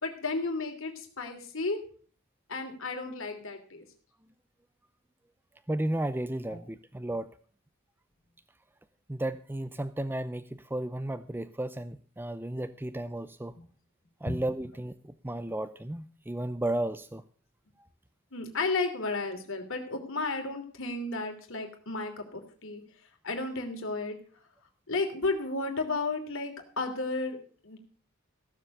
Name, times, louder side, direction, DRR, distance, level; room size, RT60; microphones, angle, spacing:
voice 1, 0.0-1.8 2.5-3.8 6.5-6.6 14.3-14.4 18.3-22.8 23.2-24.2 24.9-27.4 27.6-27.8, left 3 dB, 65° left, 5 dB, 3.0 m, -33 dB
voice 2, 5.7-7.3 9.1-13.5 14.2-17.2, right 1 dB, 10° right, 11 dB, 0.5 m, -33 dB
16.0 x 7.4 x 6.6 m, 0.43 s
head